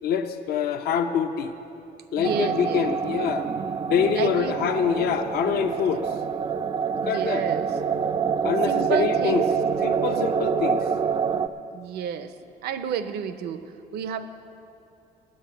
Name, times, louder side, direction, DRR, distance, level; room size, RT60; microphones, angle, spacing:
voice 1, 0.0-1.5 2.1-3.5 3.9-6.1 7.0-7.5 8.4-9.4 9.8-10.9, left 7 dB, 65° left, 7 dB, 0.6 m, -25 dB
sound 1, 2.2-11.5, right 6 dB, 25° right, 0.4 m, -26 dB
voice 2, 2.2-2.9 4.1-4.6 7.0-7.7 8.7-9.4 11.7-12.3 12.6-14.3, right 7 dB, 75° right, 11 dB, 0.7 m, -30 dB
9.1 x 8.8 x 9.0 m, 2.6 s
cardioid pair, 110°, 17 cm